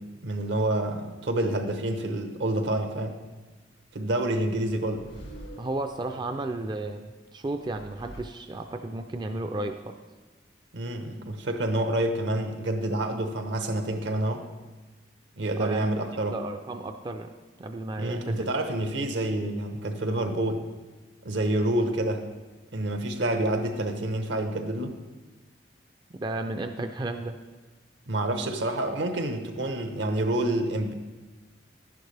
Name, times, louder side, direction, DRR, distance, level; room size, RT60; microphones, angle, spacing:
voice 1, 0.0-3.2 3.9-5.1 10.7-14.5 15.4-16.4 18.0-20.6 21.2-22.2 22.7-24.9 28.1-30.9, right 1 dB, 75° right, 7 dB, 1.0 m, -28 dB
sound 1, 4.5-6.4 7.4-9.0, right 1 dB, 85° left, 2.0 m, -47 dB
voice 2, 5.6-9.9 15.6-15.9 16.3-17.3 17.6-18.5 26.1-27.4, right 2 dB, 25° right, 6 dB, 0.3 m, -33 dB
11.0 x 11.0 x 3.3 m, 1.2 s
head